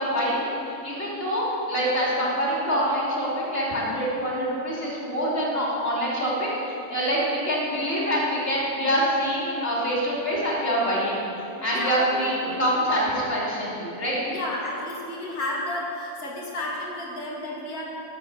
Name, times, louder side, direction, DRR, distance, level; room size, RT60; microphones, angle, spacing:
voice 1, 0.0-11.2 11.6-14.2, equal, 35° left, -6 dB, 3.2 m, -25 dB
voice 2, 11.6-12.6 14.3-17.9, left 1 dB, 65° left, -4 dB, 2.6 m, -32 dB
14.5 x 7.2 x 6.7 m, 2.8 s
omnidirectional pair, 1.7 m